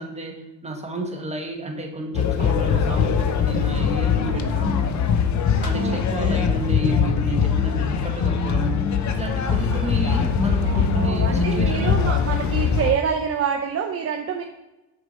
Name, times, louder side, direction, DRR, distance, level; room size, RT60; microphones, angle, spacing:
voice 1, 0.0-5.0 5.6-11.9, right 1 dB, 15° right, 1 dB, 1.2 m, -31 dB
sound 1, 2.1-12.9, left 6 dB, 50° left, 0.7 m, -22 dB
voice 2, 4.2-4.7 5.7-6.5 9.5-9.9 10.6-14.4, right 7 dB, 40° right, 3 dB, 0.6 m, -27 dB
6.5 x 4.7 x 4.3 m, 1.0 s
cardioid pair, 105°, 38 cm